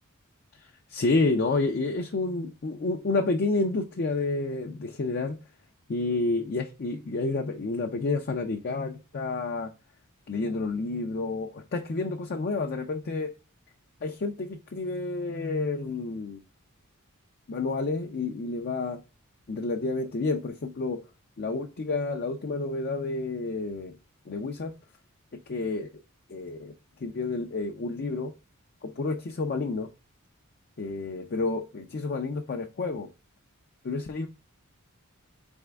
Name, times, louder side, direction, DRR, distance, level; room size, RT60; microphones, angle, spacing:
voice 1, 0.9-5.4 5.9-9.7 10.3-13.3 14.0-16.4 17.5-19.0 19.5-21.0 21.4-23.9 24.3-24.7 25.5-25.9 26.3-26.7 27.0-28.3 28.8-29.9 30.8-33.1 33.8-34.3, left 3 dB, 45° left, 0.5 m, -29 dB
4.2 x 3.5 x 3.3 m
head